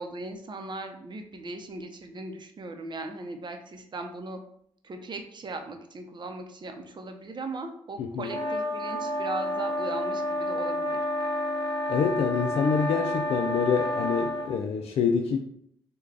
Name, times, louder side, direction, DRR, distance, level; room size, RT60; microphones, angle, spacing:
voice 1, 0.0-4.4 4.8-11.0, right 2 dB, 45° right, 0.7 m, -38 dB
voice 2, 8.0-8.3 11.9-15.4, left 6 dB, 75° left, 0.4 m, -26 dB
sound 1, 8.3-14.5, left 1 dB, 50° left, 1.2 m, -30 dB
3.2 x 2.2 x 3.7 m
supercardioid pair, 55°, 11 cm